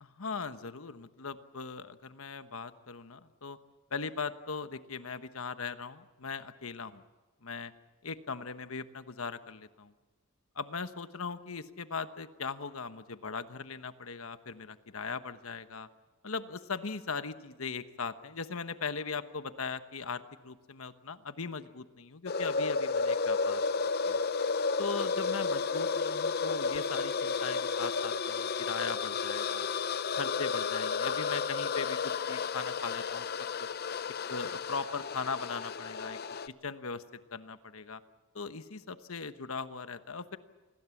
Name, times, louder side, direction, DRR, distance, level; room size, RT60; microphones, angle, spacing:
voice 1, 0.0-3.6 3.9-7.0 7.4-7.7 8.0-9.9 10.5-15.9 16.2-23.6 24.0-24.2 24.8-29.7 30.2-32.0 32.3-33.5 34.3-36.2 36.6-37.0 37.3-38.0 38.3-40.4, left 5 dB, 70° left, 11 dB, 1.2 m, -39 dB
sound 1, 22.3-36.5, left 5 dB, 45° left, 0.6 m, -32 dB
27.0 x 20.5 x 7.2 m, 1.3 s
head